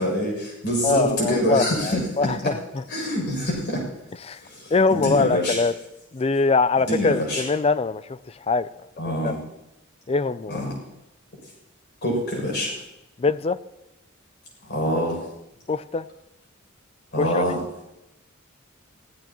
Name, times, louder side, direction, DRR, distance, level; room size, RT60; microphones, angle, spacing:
voice 1, 0.0-2.5 2.9-3.8 4.4-5.6 6.8-7.4 9.0-9.4 10.5-10.8 12.0-12.7 14.6-15.2 17.1-17.6, equal, 55° left, 7.3 m, -25 dB
voice 2, 0.8-2.5 4.2-4.4 4.7-5.7 6.1-8.0 8.5-8.7 9.2-9.3 10.1-10.6 13.2-13.6 15.7-16.1 17.2-17.4, left 4 dB, 30° left, 0.4 m, -22 dB
25.5 x 16.5 x 3.1 m
head